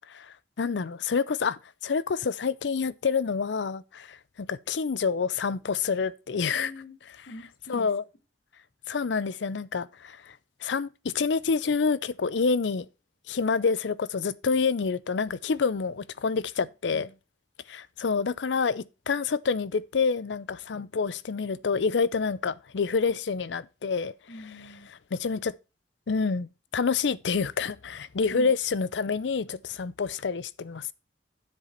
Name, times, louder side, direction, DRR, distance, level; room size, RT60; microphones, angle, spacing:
voice 1, 0.1-6.7 7.7-8.0 8.9-10.3 10.6-12.9 13.3-17.1 17.7-24.1 25.1-25.5 26.1-30.9, left 5 dB, 85° left, 0.5 m, -28 dB
voice 2, 6.5-7.0 7.2-7.9 16.9-17.2 24.3-24.9 28.3-28.5, left 1 dB, 55° left, 1.4 m, -44 dB
9.5 x 7.6 x 4.3 m
head